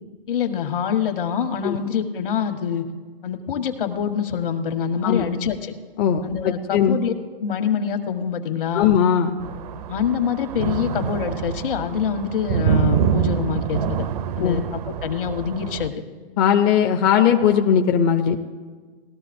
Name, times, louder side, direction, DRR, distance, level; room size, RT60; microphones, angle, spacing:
voice 1, 0.3-2.8 3.2-5.7 6.2-7.1 7.4-9.0 9.9-14.1 14.4-15.9, left 8 dB, 65° left, 6 dB, 1.4 m, -25 dB
voice 2, 6.0-7.0 8.7-9.3 14.4-14.6 16.4-18.4, left 8 dB, 25° left, 4 dB, 0.5 m, -19 dB
sound 1, 9.4-15.9, right 8 dB, 40° right, 0.5 m, -25 dB
19.0 x 13.0 x 2.6 m, 1.5 s
hypercardioid pair, 135°, 29 cm